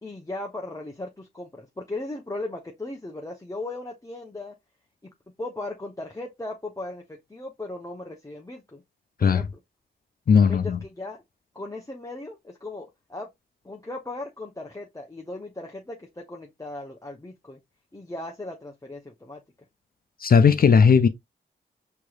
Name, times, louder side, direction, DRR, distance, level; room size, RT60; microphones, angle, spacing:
voice 1, 0.0-4.5 5.4-8.8 9.2-9.5 10.5-11.2 11.5-13.3 13.6-17.6 17.9-19.4, left 2 dB, 15° left, 0.8 m, -37 dB
voice 2, 10.3-10.8 20.2-21.1, left 6 dB, 50° left, 0.5 m, -17 dB
4.5 x 2.9 x 2.4 m
cardioid pair, 45°, 20 cm